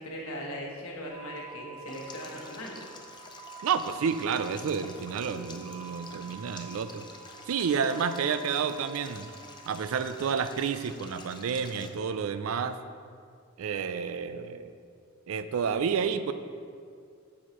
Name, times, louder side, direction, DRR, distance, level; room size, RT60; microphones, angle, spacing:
voice 1, 0.0-2.8, equal, 85° left, -2 dB, 1.3 m, -39 dB
sound 1, 1.1-10.1, right 6 dB, 25° right, 0.7 m, -48 dB
Stream, 1.9-11.9, left 4 dB, 20° left, 0.5 m, -49 dB
voice 2, 3.6-7.0 7.5-9.3 9.7-12.8 13.6-14.7 15.3-16.3, right 6 dB, 75° right, 11 dB, 0.4 m, -30 dB
7.2 x 6.3 x 3.0 m, 2.2 s
head